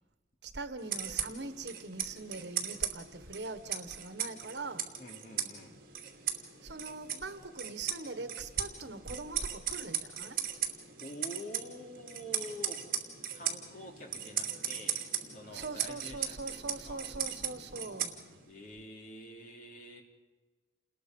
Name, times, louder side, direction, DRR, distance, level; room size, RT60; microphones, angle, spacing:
voice 1, 0.4-4.9 6.6-10.4 15.4-18.2, right 3 dB, 80° right, 1.5 m, -42 dB
sound 1, 0.8-18.6, right 9 dB, 55° right, 2.7 m, -38 dB
voice 2, 5.0-5.8 11.0-12.9 13.3-17.1 18.5-20.0, left 1 dB, 50° left, 3.5 m, -47 dB
29.0 x 20.5 x 5.4 m
head